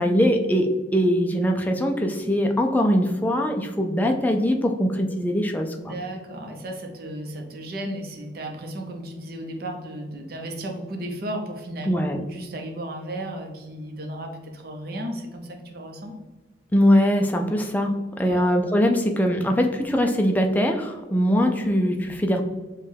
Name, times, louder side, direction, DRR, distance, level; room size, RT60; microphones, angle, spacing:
voice 1, 0.0-6.0 11.9-12.2 16.7-22.4, equal, 10° left, 3 dB, 0.3 m, -22 dB
voice 2, 5.8-16.1 18.2-18.4, right 1 dB, 50° right, 3 dB, 0.6 m, -34 dB
5.2 x 2.2 x 3.3 m, 1.2 s
head